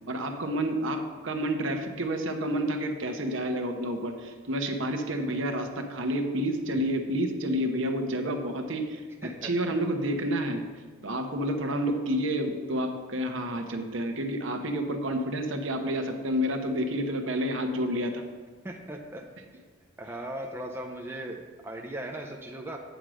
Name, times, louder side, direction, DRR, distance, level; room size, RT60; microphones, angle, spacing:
voice 1, 0.1-10.7 11.0-18.2, equal, 70° right, 5 dB, 1.0 m, -29 dB
voice 2, 9.2-9.7 18.6-19.2 20.0-22.8, right 1 dB, 10° right, 2 dB, 0.5 m, -38 dB
9.2 x 4.9 x 6.2 m, 1.5 s
head